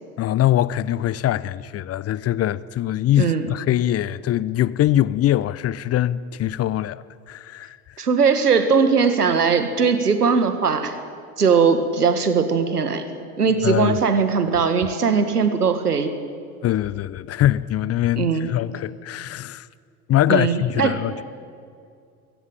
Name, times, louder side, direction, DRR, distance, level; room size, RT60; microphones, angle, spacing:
voice 1, 0.2-7.8 13.6-14.0 16.6-19.7 20.1-21.2, left 12 dB, 35° left, 0.7 m, -22 dB
voice 2, 8.0-11.0 11.4-13.0 13.4-16.2 18.2-18.5 20.3-21.0, right 5 dB, 90° right, 1.8 m, -19 dB
22.5 x 17.0 x 8.9 m
figure-of-eight pair, 70°, 45 cm